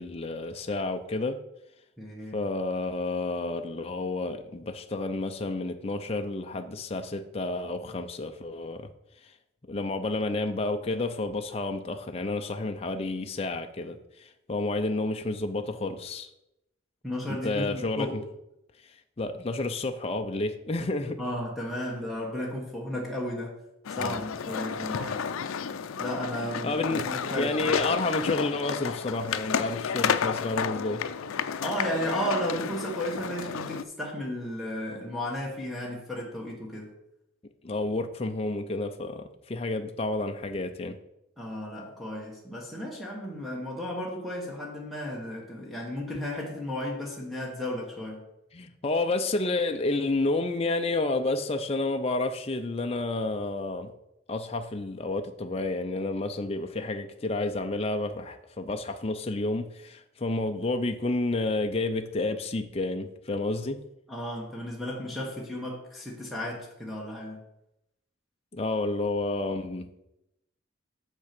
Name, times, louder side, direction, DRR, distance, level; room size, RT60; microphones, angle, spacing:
voice 1, 0.0-1.4 2.3-8.9 9.7-16.3 17.3-18.2 19.2-21.2 24.0-24.2 26.4-31.0 37.6-41.0 48.5-53.9 54.3-63.8 68.5-70.0, left 2 dB, 30° left, 6 dB, 0.5 m, -30 dB
voice 2, 2.0-2.4 17.0-18.2 21.2-23.5 23.9-25.3 26.0-27.9 31.6-36.9 41.4-48.2 64.1-67.4, equal, ahead, -2 dB, 1.3 m, -34 dB
sound 1, 23.8-33.8, left 7 dB, 85° left, 0.5 m, -31 dB
6.5 x 6.1 x 5.9 m, 0.86 s
head